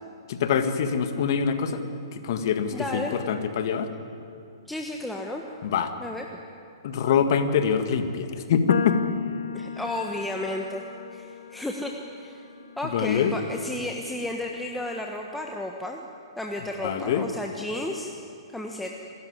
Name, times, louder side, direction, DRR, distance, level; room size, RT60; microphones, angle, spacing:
voice 1, 0.3-1.8 2.1-3.9 5.6-5.9 6.8-9.0 12.9-13.3 16.8-17.3, left 7 dB, 50° left, 8 dB, 1.8 m, -24 dB
voice 2, 2.7-3.1 4.7-5.4 6.0-6.2 9.5-10.8 11.1-12.5 12.8-16.0 16.4-18.1 18.5-18.9, left 1 dB, 5° left, 1 dB, 1.3 m, -33 dB
sound 1, 8.7-15.0, left 6 dB, 70° left, 0.9 m, -36 dB
28.0 x 13.5 x 9.7 m, 2.6 s
figure-of-eight pair, 120°, 3 cm